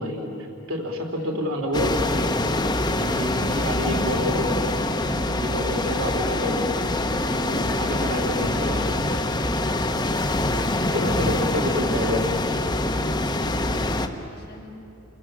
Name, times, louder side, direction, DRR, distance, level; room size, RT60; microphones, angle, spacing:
voice 1, 0.0-2.2 3.0-6.6 7.3-9.0 10.9-12.3, equal, 85° right, 1 dB, 2.9 m, -29 dB
sound 1, 1.7-14.1, left 2 dB, 20° left, 0.9 m, -24 dB
sound 2, 5.3-12.3, left 2 dB, 85° left, 4.6 m, -45 dB
voice 2, 13.4-14.8, left 2 dB, 50° left, -4 dB, 5.8 m, -45 dB
29.0 x 23.5 x 7.5 m, 2.9 s
head